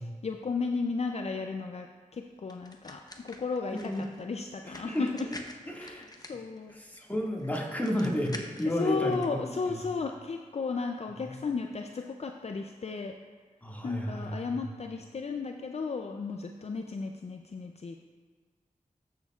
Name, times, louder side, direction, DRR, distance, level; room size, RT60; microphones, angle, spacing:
voice 1, 0.0-5.3 5.8-6.7 8.8-13.1 13.8-18.0, left 4 dB, 50° left, 4 dB, 0.4 m, -34 dB
sound 1, 2.5-9.3, left 1 dB, 30° left, 0.8 m, -48 dB
voice 2, 3.7-4.0 4.6-5.1 5.7-6.1 6.7-9.8 11.3-11.4 13.6-14.7, equal, 10° left, -3 dB, 1.9 m, -32 dB
13.5 x 6.4 x 2.4 m, 1.4 s
cardioid pair, 45°, 14 cm